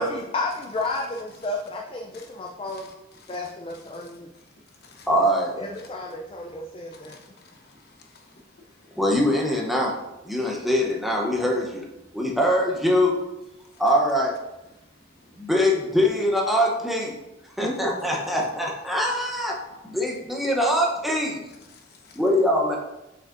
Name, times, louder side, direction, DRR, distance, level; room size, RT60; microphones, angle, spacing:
voice 1, 0.0-2.9 3.3-4.3 5.1-5.2 5.6-7.2, left 2 dB, 30° left, 0.4 m, -32 dB
voice 2, 5.1-5.6 8.9-9.9 10.2-11.8 12.1-13.2 13.8-14.3 15.4-17.1 17.6-19.6 19.8-21.4 22.2-22.8, equal, ahead, 0.8 m, -23 dB
voice 3, 6.9-8.3 8.6-8.7 8.9-9.0 17.6-17.9 19.7-19.8 21.7-22.2, left 1 dB, 55° left, 0.9 m, -39 dB
7.2 x 5.2 x 2.6 m
head